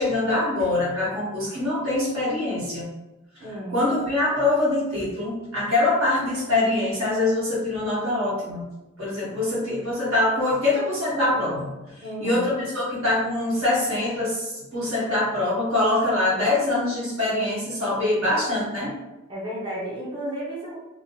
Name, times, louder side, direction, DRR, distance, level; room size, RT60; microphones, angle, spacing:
voice 1, 0.0-2.9 3.4-8.6 9.0-11.7 12.2-18.9, left 2 dB, 80° right, -7 dB, 1.5 m, -24 dB
voice 2, 3.4-3.8 12.0-12.5 19.3-20.8, right 1 dB, 25° right, -7 dB, 0.5 m, -32 dB
2.9 x 2.0 x 2.9 m, 1.0 s
head